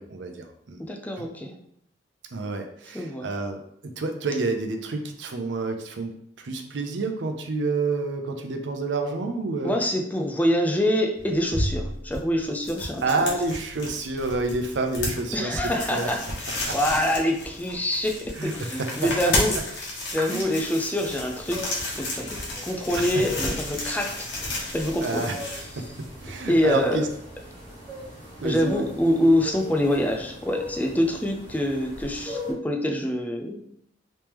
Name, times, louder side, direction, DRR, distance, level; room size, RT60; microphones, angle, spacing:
voice 1, 0.0-0.8 1.2-1.3 2.3-6.1 6.4-9.8 13.0-15.6 15.9-16.1 16.7-16.8 18.4-19.1 20.3-20.6 22.9-23.0 25.0-25.4 25.8-25.9 26.2-27.1 28.4-28.9, right 3 dB, 75° right, 5 dB, 0.5 m, -29 dB
voice 2, 0.8-1.5 2.9-3.3 9.6-13.0 15.3-19.6 20.1-21.7 22.0-24.2 24.7-25.3 26.5-27.0 28.4-33.7, left 1 dB, 10° left, 2 dB, 0.4 m, -25 dB
sound 1, 11.2-26.3, left 1 dB, 75° left, 1.0 m, -32 dB
sound 2, 21.0-32.5, left 1 dB, 30° right, 1.3 m, -39 dB
3.4 x 3.1 x 3.0 m, 0.72 s
head